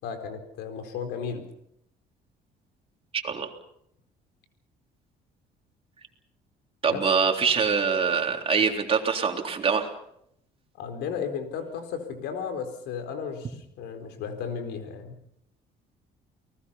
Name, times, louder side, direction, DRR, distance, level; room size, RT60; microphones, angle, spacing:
voice 1, 0.0-1.4 6.9-7.0 10.8-15.1, left 6 dB, 85° left, 7 dB, 4.3 m, -34 dB
voice 2, 3.1-3.5 6.8-9.9, right 5 dB, 35° right, 3 dB, 3.6 m, -24 dB
30.0 x 19.5 x 5.7 m, 0.73 s
cardioid pair, 110°, 17 cm